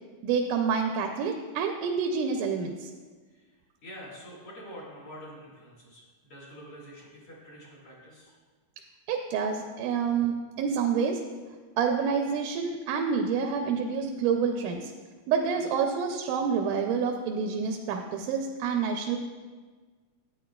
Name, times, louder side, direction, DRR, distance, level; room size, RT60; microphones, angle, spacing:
voice 1, 0.2-2.9 9.1-11.2 11.8-14.9 15.3-19.2, right 6 dB, 85° right, 3 dB, 2.1 m, -28 dB
voice 2, 3.3-8.3, equal, 45° left, -7 dB, 2.7 m, -47 dB
11.5 x 9.0 x 2.3 m, 1.4 s
omnidirectional pair, 3.6 m